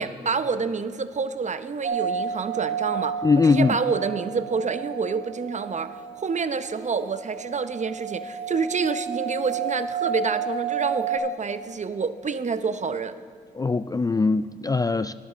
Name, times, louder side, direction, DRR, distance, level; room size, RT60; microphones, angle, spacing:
voice 1, 0.0-13.1, right 5 dB, 40° right, 12 dB, 0.7 m, -28 dB
sound 1, 1.8-11.2, right 7 dB, 80° right, 2.6 m, -31 dB
voice 2, 3.2-3.8 13.5-15.1, left 4 dB, 20° left, 13 dB, 0.3 m, -21 dB
10.0 x 9.2 x 7.0 m, 2.3 s
supercardioid pair, 45°, 19 cm